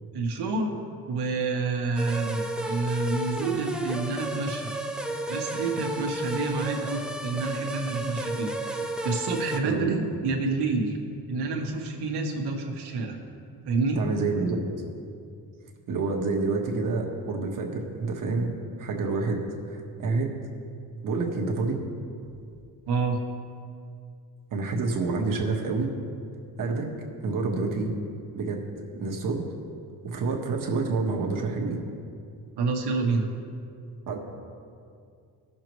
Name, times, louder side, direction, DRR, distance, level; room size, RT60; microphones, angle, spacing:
voice 1, 0.1-0.7 1.1-4.7 5.3-8.5 9.0-11.0 11.3-13.2 13.6-14.0 22.9-23.2 32.6-33.3, right 3 dB, 70° right, 2 dB, 1.4 m, -28 dB
sound 1, 2.0-9.6, right 1 dB, ahead, 0.3 m, -32 dB
voice 2, 9.6-10.0 14.0-14.6 15.9-18.5 18.8-20.3 21.0-21.8 24.5-25.9 26.6-26.9 27.2-27.9 28.3-28.6 28.9-29.4 30.0-31.8 34.1-34.2, right 3 dB, 50° right, 1 dB, 1.3 m, -28 dB
17.0 x 6.6 x 3.1 m, 2.4 s
cardioid pair, 165°, 41 cm